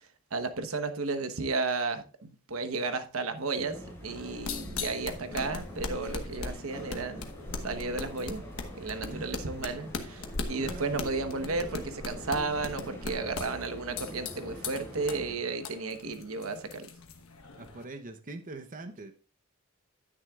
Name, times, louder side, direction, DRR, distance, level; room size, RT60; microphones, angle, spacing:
voice 1, 0.3-7.2 7.6-8.4 8.8-16.9, right 3 dB, 70° right, 1.1 m, -33 dB
sound 1, 3.6-15.3, equal, 10° left, 5.0 m, -44 dB
sound 2, 4.1-17.8, left 4 dB, 70° left, 1.2 m, -40 dB
voice 2, 10.6-11.0 17.6-19.1, right 2 dB, 40° right, 0.8 m, -43 dB
11.0 x 9.7 x 2.4 m
head